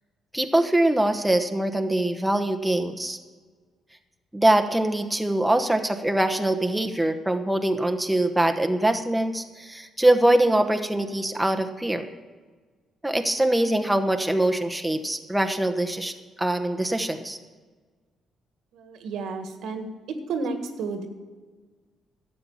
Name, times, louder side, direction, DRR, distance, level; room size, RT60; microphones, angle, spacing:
voice 1, 0.3-3.2 4.3-12.0 13.0-16.1 16.4-17.4, right 1 dB, 5° right, 6 dB, 1.0 m, -23 dB
voice 2, 18.7-21.1, right 4 dB, 80° right, 7 dB, 1.6 m, -32 dB
12.5 x 7.7 x 7.1 m, 1.4 s
cardioid pair, 90°, 0 cm